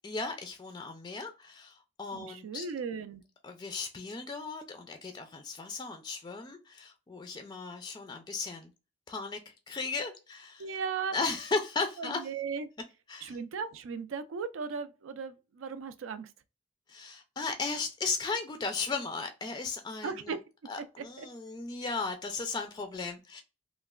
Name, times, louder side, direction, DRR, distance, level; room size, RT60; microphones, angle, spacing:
voice 1, 0.0-2.7 3.4-8.7 9.1-10.6 11.1-12.2 13.1-13.4 16.9-20.4 20.7-23.4, left 4 dB, 20° left, 0.3 m, -36 dB
voice 2, 2.1-3.2 10.6-11.2 12.0-12.7 13.2-16.3 20.0-20.4 21.2-21.3, right 5 dB, 80° right, 0.4 m, -37 dB
3.0 x 2.1 x 2.2 m
head